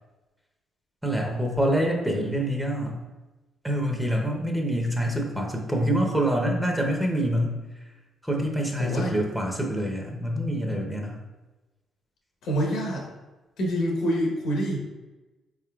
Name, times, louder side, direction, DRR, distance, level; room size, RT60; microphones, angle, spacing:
voice 1, 1.0-3.0 3.6-7.6 8.2-11.2, equal, 5° right, 0 dB, 0.7 m, -26 dB
voice 2, 8.8-9.1 10.6-10.8 12.4-13.0 13.6-14.8, equal, 85° left, -1 dB, 1.0 m, -26 dB
4.1 x 3.6 x 2.3 m, 1.1 s
cardioid pair, 70°, 0 cm